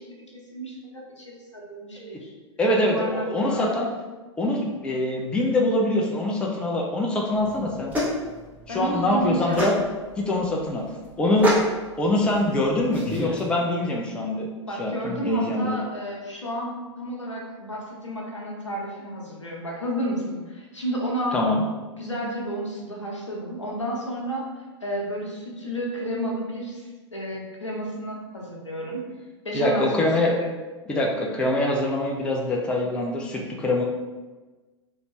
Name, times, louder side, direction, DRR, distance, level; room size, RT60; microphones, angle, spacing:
voice 1, 0.0-2.3 2.8-3.8 8.7-9.6 14.7-21.6 22.0-24.5 24.8-26.8 27.1-29.0 29.4-30.1 30.4-30.5, equal, 80° left, -2 dB, 0.8 m, -31 dB
voice 2, 2.6-3.9 4.4-7.9 8.7-9.7 10.2-10.8 11.2-11.5 12.0-14.5 14.8-15.8 21.3-21.6 29.5-30.3 30.9-33.8, left 1 dB, 5° left, -1 dB, 0.4 m, -24 dB
sound 1, 7.3-13.4, equal, 10° right, 0.9 m, -30 dB
3.0 x 2.7 x 3.1 m, 1.2 s
figure-of-eight pair, 100°, 15 cm